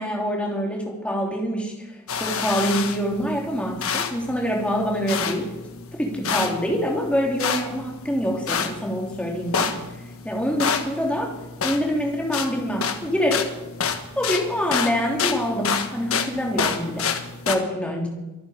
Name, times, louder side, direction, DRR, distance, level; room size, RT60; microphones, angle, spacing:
voice 1, 0.0-1.9 2.2-5.5 6.0-9.7 10.2-11.4 11.6-13.5 14.2-17.1 17.5-18.1, equal, 5° left, -1 dB, 3.0 m, -25 dB
sound 1, 2.1-17.6, left 6 dB, 65° left, 1.5 m, -29 dB
24.0 x 9.0 x 5.1 m, 1.0 s
head